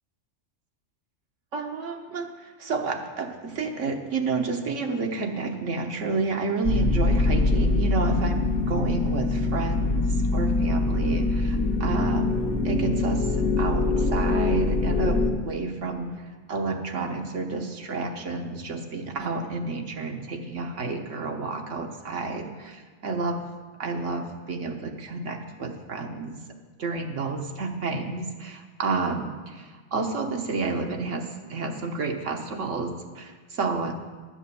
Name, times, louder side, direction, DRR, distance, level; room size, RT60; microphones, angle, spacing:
voice 1, 1.5-12.3 12.6-23.4 23.8-26.4 26.8-33.9, right 3 dB, 80° right, 4 dB, 1.5 m, -30 dB
sound 1, 6.6-15.3, left 2 dB, 70° left, 1.5 m, -24 dB
10.5 x 7.9 x 6.9 m, 1.4 s
omnidirectional pair, 1.2 m